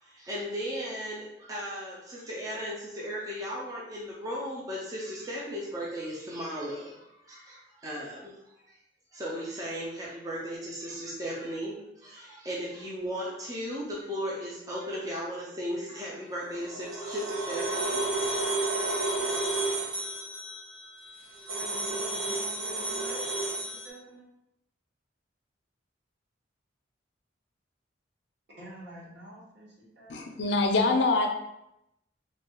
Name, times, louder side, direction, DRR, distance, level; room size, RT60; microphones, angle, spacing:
voice 1, 0.0-8.4 8.7-8.8 9.1-18.4, equal, 20° right, -5 dB, 0.4 m, -36 dB
sound 1, 16.4-23.9, right 2 dB, 85° right, 0.8 m, -31 dB
voice 2, 21.5-24.2 28.6-30.3, right 1 dB, 60° right, -6 dB, 1.1 m, -47 dB
voice 3, 30.1-31.3, left 3 dB, 70° left, 3 dB, 0.5 m, -24 dB
3.1 x 2.3 x 2.9 m, 0.84 s
head